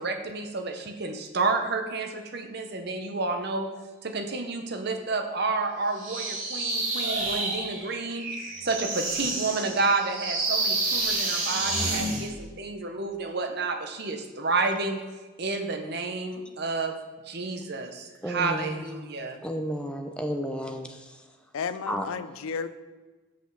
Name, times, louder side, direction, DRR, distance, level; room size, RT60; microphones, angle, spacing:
voice 1, 0.0-3.7 4.0-8.3 8.6-15.0 15.4-17.0 17.2-19.4, right 3 dB, 50° right, 5 dB, 0.8 m, -30 dB
sound 1, 6.0-12.3, right 2 dB, 65° right, 2.9 m, -29 dB
voice 2, 18.2-19.1 19.4-21.2 21.9-22.1, equal, 5° left, 4 dB, 0.5 m, -32 dB
voice 3, 21.5-22.7, left 6 dB, 75° left, 12 dB, 0.4 m, -32 dB
6.0 x 5.5 x 6.7 m, 1.3 s
head